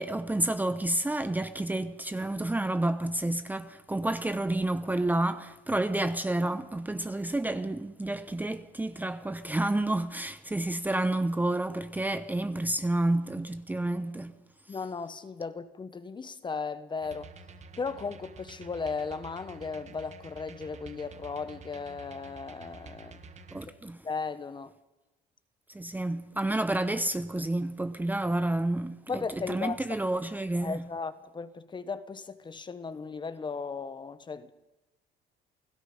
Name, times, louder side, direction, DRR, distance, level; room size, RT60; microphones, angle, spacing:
voice 1, 0.0-14.3 23.5-24.0 25.7-30.8, right 1 dB, 10° right, 0.9 m, -30 dB
voice 2, 14.7-17.3 17.8-23.2 24.0-24.7 29.1-29.8 30.6-34.5, left 4 dB, 25° left, 1.3 m, -36 dB
sound 1, 17.0-23.7, right 4 dB, 45° right, 1.7 m, -49 dB
29.5 x 17.0 x 5.6 m
cardioid pair, 110°, 17 cm